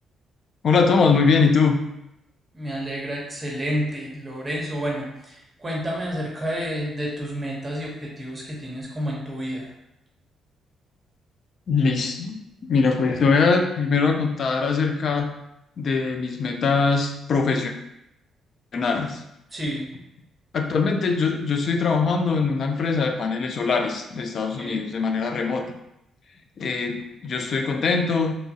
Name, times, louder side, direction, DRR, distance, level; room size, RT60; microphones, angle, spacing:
voice 1, 0.6-1.8 11.7-15.3 15.8-17.7 18.7-19.2 20.5-25.7 26.6-28.4, left 4 dB, 55° left, 5 dB, 0.4 m, -22 dB
voice 2, 2.5-9.7 19.5-19.9 24.6-24.8, equal, 20° right, -3 dB, 0.9 m, -30 dB
2.9 x 2.2 x 2.7 m, 0.84 s
cardioid pair, 90°, 0 cm